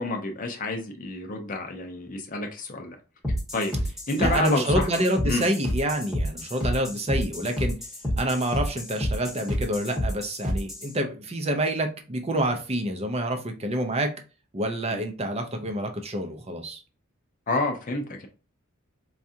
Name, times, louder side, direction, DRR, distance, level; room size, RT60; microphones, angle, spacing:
voice 1, 0.0-3.0 3.5-3.7 4.1-4.9 5.2-5.4 14.9-15.0 17.5-18.3, left 2 dB, 40° left, 4 dB, 0.5 m, -29 dB
sound 1, 3.2-10.9, equal, ahead, 1.0 m, -29 dB
voice 2, 4.2-7.8 8.2-14.1 14.5-16.8, right 1 dB, 30° right, 6 dB, 0.5 m, -27 dB
4.5 x 2.4 x 2.7 m, 0.34 s
head